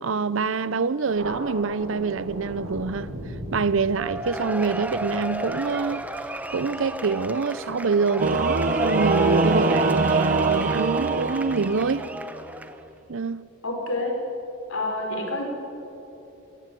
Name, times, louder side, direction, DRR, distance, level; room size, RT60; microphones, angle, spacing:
voice 1, 0.0-3.1 3.5-6.0 6.5-12.1 13.1-13.4, right 4 dB, 70° right, 0.6 m, -25 dB
Thunder, 1.1-8.1, right 1 dB, 90° right, 4.0 m, -39 dB
Cheering / Applause / Crowd, 3.9-12.9, right 1 dB, 5° right, 0.7 m, -33 dB
Singing / Musical instrument, 8.2-12.3, right 3 dB, 40° right, 0.9 m, -23 dB
voice 2, 13.6-14.2 14.7-15.5, left 2 dB, 75° left, 4.6 m, -28 dB
22.0 x 18.5 x 7.7 m
head